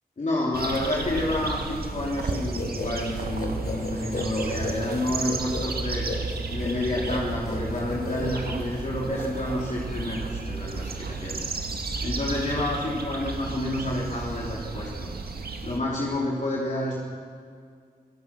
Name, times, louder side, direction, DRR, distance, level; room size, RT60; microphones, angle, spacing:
voice 1, 0.2-6.1 6.5-11.4 12.0-15.2 15.6-17.0, left 1 dB, 50° left, -4 dB, 3.3 m, -29 dB
sound 1, 0.5-15.8, right 3 dB, 80° right, 1.9 m, -33 dB
sound 2, 2.3-8.8, left 3 dB, 75° left, 3.8 m, -35 dB
26.5 x 17.5 x 6.2 m, 2.1 s
wide cardioid pair, 90°, 16 cm